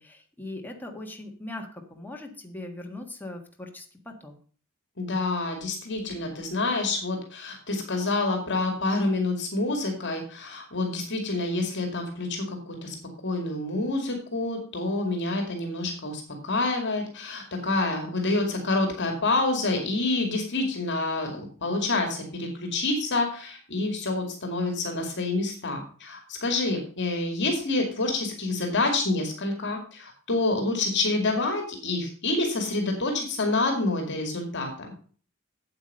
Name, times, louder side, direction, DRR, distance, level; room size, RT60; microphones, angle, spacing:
voice 1, 0.0-4.3, left 2 dB, 10° left, 2 dB, 1.6 m, -40 dB
voice 2, 5.0-13.0 13.2-34.9, left 2 dB, 60° left, 3 dB, 2.2 m, -27 dB
8.5 x 8.1 x 5.4 m, 0.43 s
head